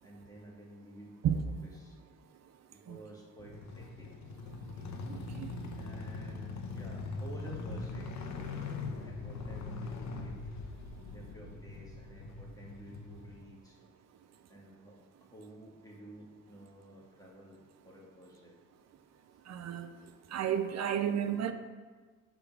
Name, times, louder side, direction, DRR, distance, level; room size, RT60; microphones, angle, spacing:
voice 1, 0.0-1.3 1.6-2.0 2.7-4.1 5.7-8.1 8.8-10.4 11.1-13.8 14.5-18.6, right 1 dB, 10° left, 2.1 m, -52 dB
sound 1, 3.4-13.4, left 3 dB, 65° left, 1.0 m, -41 dB
voice 2, 5.1-5.5 19.5-19.9 20.3-21.5, right 9 dB, 60° right, 0.6 m, -32 dB
8.3 x 3.8 x 6.2 m
cardioid pair, 90°, 30 cm